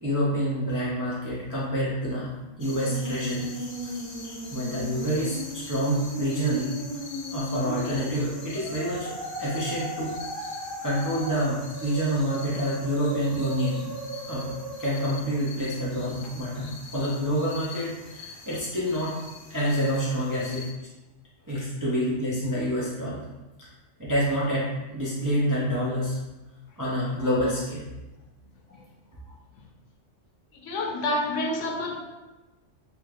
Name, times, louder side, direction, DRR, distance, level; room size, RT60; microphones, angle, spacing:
voice 1, 0.0-2.3 2.6-3.5 4.5-6.8 7.3-9.1 9.4-10.1 10.8-14.0 14.3-14.5 14.8-19.2 19.5-20.6 21.5-23.3 23.6-23.7 24.0-26.2 26.8-27.9, equal, 30° right, -7 dB, 0.3 m, -27 dB
Musical instrument, 2.5-15.5, right 1 dB, 85° right, 1.6 m, -37 dB
sound 1, 2.6-20.7, left 3 dB, 55° left, 0.6 m, -44 dB
voice 2, 30.5-32.0, left 2 dB, 75° left, 1 dB, 0.9 m, -28 dB
3.2 x 3.1 x 2.4 m, 1.1 s
omnidirectional pair, 1.3 m